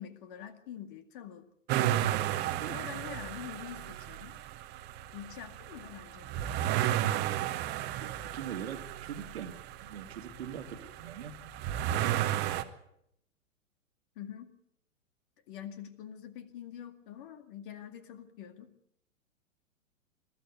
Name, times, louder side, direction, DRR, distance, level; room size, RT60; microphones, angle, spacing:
voice 1, 0.0-1.5 2.7-4.3 5.1-6.3 14.2-14.5 15.5-18.7, left 10 dB, 40° left, 10 dB, 2.1 m, -45 dB
sound 1, 1.7-12.6, right 12 dB, 25° right, 1.2 m, -33 dB
voice 2, 7.9-11.5, right 8 dB, 50° right, 8 dB, 1.9 m, -42 dB
22.0 x 13.5 x 9.4 m, 0.75 s
figure-of-eight pair, 110°, 40 cm